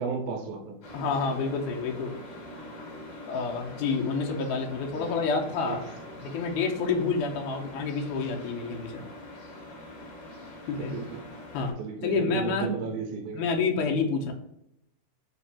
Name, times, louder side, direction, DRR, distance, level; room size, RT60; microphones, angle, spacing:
voice 1, 0.0-0.8 5.0-5.2 5.6-5.8 10.9-11.1 11.8-13.4 13.8-13.9, right 5 dB, 80° right, 4 dB, 2.1 m, -34 dB
sound 1, 0.8-11.7, left 1 dB, 55° left, 2.5 m, -44 dB
voice 2, 0.9-2.1 3.3-5.9 6.2-9.0 10.7-11.0 11.5-11.8 12.0-12.7 13.3-14.3, left 4 dB, 80° left, 2 dB, 2.1 m, -28 dB
5.2 x 2.4 x 4.1 m, 0.82 s
omnidirectional pair, 3.8 m